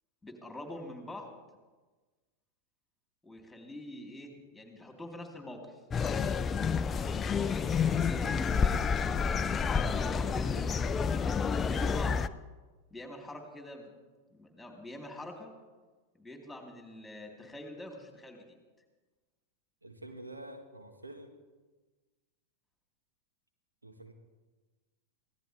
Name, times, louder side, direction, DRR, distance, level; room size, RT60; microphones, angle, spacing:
voice 1, 0.2-1.3 3.2-5.7 7.3-10.7 11.6-12.2 12.9-13.9 14.3-15.5 16.2-18.6, left 1 dB, 5° left, 1 dB, 3.5 m, -45 dB
sound 1, 5.9-12.3, left 6 dB, 20° left, 0.5 m, -29 dB
voice 2, 19.8-21.3 23.8-24.1, right 1 dB, 80° right, 5 dB, 1.6 m, -47 dB
24.5 x 17.0 x 3.5 m, 1.3 s
figure-of-eight pair, 90°, 0 cm